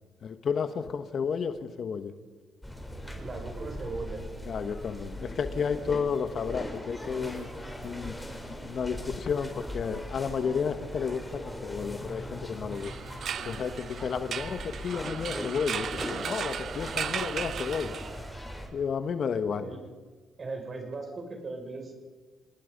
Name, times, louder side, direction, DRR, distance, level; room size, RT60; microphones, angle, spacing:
voice 1, 0.2-2.1 4.5-7.5 7.8-8.1 8.6-12.9 13.4-17.9 18.7-19.7, left 6 dB, 55° left, 9 dB, 1.5 m, -32 dB
sound 1, 2.6-18.7, equal, 5° left, 4.3 m, -40 dB
voice 2, 3.2-4.2 16.8-16.9 19.5-19.8 20.4-21.9, right 3 dB, 40° right, 3 dB, 6.5 m, -38 dB
sound 2, 12.7-18.4, right 8 dB, 60° right, 0.7 m, -36 dB
29.0 x 19.0 x 5.4 m, 1.3 s
cardioid pair, 90°, 0 cm